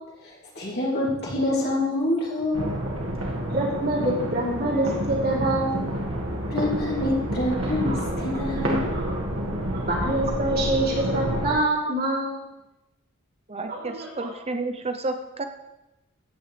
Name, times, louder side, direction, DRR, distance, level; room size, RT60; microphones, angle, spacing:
voice 1, 0.2-2.7 6.5-8.9, left 1 dB, 50° left, -5 dB, 3.3 m, -26 dB
sound 1, 2.5-11.5, right 1 dB, 65° right, 1.9 m, -29 dB
voice 2, 3.5-5.9 7.9-8.1 8.5-9.1 9.7-12.5 13.7-14.3, right 1 dB, 45° right, -4 dB, 3.5 m, -26 dB
voice 3, 13.5-15.4, right 2 dB, 30° right, 7 dB, 0.8 m, -31 dB
15.5 x 9.1 x 3.4 m, 0.96 s
head